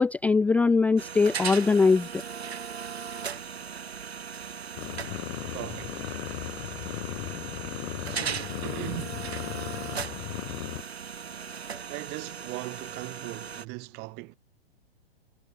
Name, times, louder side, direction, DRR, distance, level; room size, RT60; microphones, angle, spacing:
voice 1, 0.0-2.2, left 4 dB, 5° left, 0.6 m, -22 dB
sound 1, 1.0-13.7, right 7 dB, 75° right, 5.9 m, -38 dB
sound 2, 4.8-10.8, left 27 dB, 40° left, 5.0 m, -37 dB
voice 2, 5.5-6.1 8.0-9.3 10.1-10.2 11.9-14.4, right 28 dB, 30° right, 2.4 m, -39 dB
hypercardioid pair, 125°, 32 cm